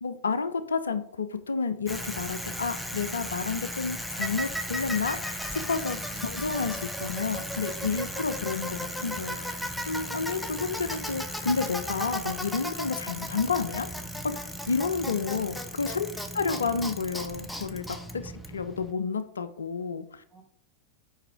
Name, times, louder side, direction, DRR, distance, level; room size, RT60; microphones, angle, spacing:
voice 1, 0.0-9.6 9.9-13.9 14.2-14.3 14.7-16.1 16.3-17.9 18.1-20.2, left 5 dB, 70° left, 11 dB, 0.4 m, -30 dB
Bicycle, 1.9-18.9, equal, 5° left, 0.6 m, -35 dB
voice 2, 15.8-16.2 18.1-18.5 20.3-20.4, right 4 dB, 20° right, -1 dB, 1.6 m, -55 dB
5.5 x 5.0 x 3.5 m, 0.66 s
figure-of-eight pair, 90°, 0 cm